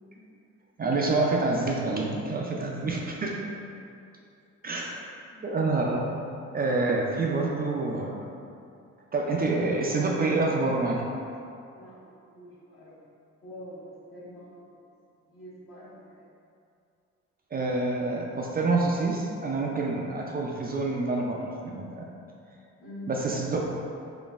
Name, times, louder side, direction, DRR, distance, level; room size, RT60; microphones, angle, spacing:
voice 1, 0.8-3.4 4.6-5.0 5.4-6.2 6.5-8.1 9.1-11.1 17.5-22.0 23.1-23.6, right 3 dB, 30° right, -1 dB, 0.4 m, -27 dB
voice 2, 11.7-13.0 13.4-14.8 15.3-16.3 22.8-23.1, left 1 dB, 45° left, -9 dB, 1.1 m, -46 dB
4.1 x 3.1 x 2.4 m, 2.5 s
cardioid pair, 90°, 30 cm